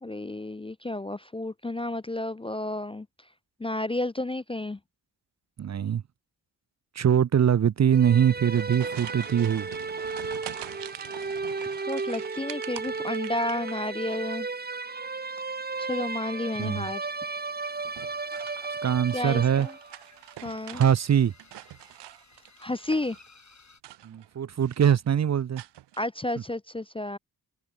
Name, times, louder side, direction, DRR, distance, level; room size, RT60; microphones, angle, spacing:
voice 1, 0.0-3.1 3.6-4.8 11.9-14.5 15.8-17.1 19.1-19.7 20.4-20.8 22.6-23.2 26.0-27.2, left 1 dB, 15° left, 0.4 m, -31 dB
voice 2, 5.6-6.0 7.0-9.7 16.6-16.9 18.8-19.7 20.7-21.3 24.0-25.6, right 9 dB, 45° right, 0.5 m, -23 dB
sound 1, 7.9-20.0, right 4 dB, 25° right, 1.1 m, -34 dB
sound 2, 8.2-14.2 14.5-15.1 16.5-16.9 17.9-20.9 21.3-23.3 23.7-24.4 24.6-25.1 25.6-26.0, right 14 dB, 90° right, 0.6 m, -45 dB
sound 3, 17.6-23.8, left 4 dB, 45° left, 7.6 m, -58 dB
cardioid pair, 75°, 40 cm